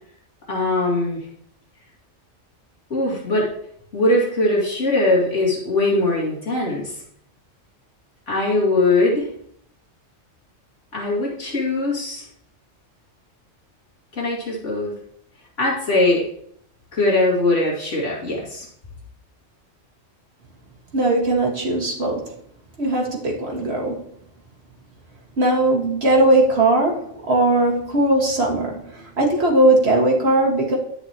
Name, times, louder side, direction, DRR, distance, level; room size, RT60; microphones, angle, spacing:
voice 1, 0.5-1.2 2.9-3.5 3.9-7.0 8.3-9.3 10.9-12.2 14.1-14.9 15.6-16.2 16.9-18.7, left 2 dB, 75° left, -4 dB, 2.7 m, -21 dB
voice 2, 20.9-22.2 22.8-24.0 25.4-30.8, right 2 dB, 55° right, -1 dB, 2.1 m, -19 dB
10.5 x 8.6 x 3.0 m, 0.68 s
omnidirectional pair, 1.3 m